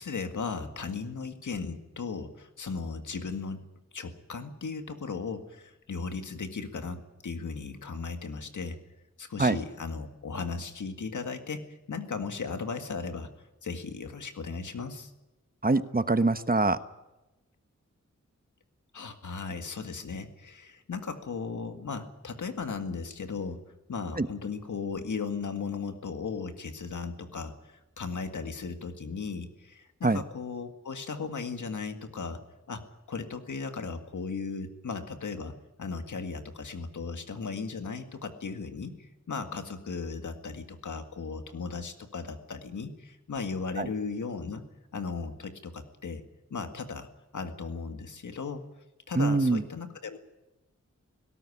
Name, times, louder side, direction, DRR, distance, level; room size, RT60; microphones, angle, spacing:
voice 1, 0.0-3.6 3.9-8.8 9.2-13.3 13.6-15.1 18.9-23.6 23.9-27.5 28.0-32.4 32.7-38.9 39.3-44.6 44.9-46.2 46.5-47.1 47.3-48.7 49.1-50.2, left 4 dB, 90° left, 7 dB, 2.0 m, -36 dB
voice 2, 15.6-16.8 24.2-24.3 30.0-30.2 43.8-43.9 49.1-49.6, right 3 dB, 30° right, 11 dB, 1.1 m, -24 dB
18.5 x 17.5 x 9.9 m, 1.0 s
wide cardioid pair, 55°, 29 cm